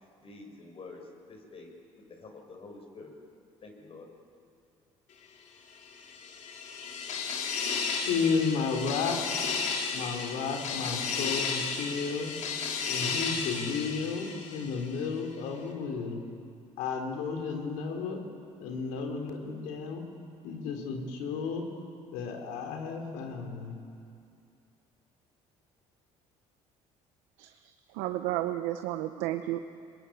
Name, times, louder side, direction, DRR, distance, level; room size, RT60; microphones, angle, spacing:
voice 1, 0.2-1.7 2.1-3.1 3.6-4.1, left 3 dB, 45° left, 3 dB, 5.8 m, -47 dB
sound 1, 5.9-15.0, left 5 dB, 65° left, 3.6 m, -33 dB
voice 2, 8.1-9.2 9.9-12.3 12.9-16.2 16.8-18.2 18.6-20.0 20.4-21.6 22.1-23.7, left 5 dB, 80° left, 3 dB, 3.7 m, -32 dB
voice 3, 27.9-29.6, right 14 dB, 85° right, 8 dB, 0.9 m, -32 dB
24.0 x 21.0 x 9.2 m, 2.5 s
supercardioid pair, 75°, 13 cm